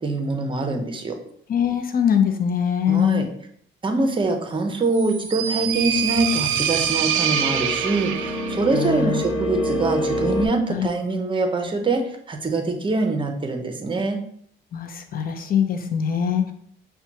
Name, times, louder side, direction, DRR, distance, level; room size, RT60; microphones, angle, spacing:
voice 1, 0.0-1.1 2.9-3.3 3.8-12.0 12.3-14.2, right 3 dB, 25° right, 4 dB, 0.7 m, -24 dB
voice 2, 1.5-3.3 8.7-9.2 10.7-10.9 14.7-16.5, left 8 dB, 45° left, 6 dB, 0.6 m, -22 dB
sound 1, 4.9-8.7, right 8 dB, 85° right, 0.4 m, -25 dB
sound 2, 6.0-10.5, equal, 25° left, 1.0 m, -28 dB
5.6 x 2.2 x 2.8 m, 0.67 s
cardioid pair, 90°, 20 cm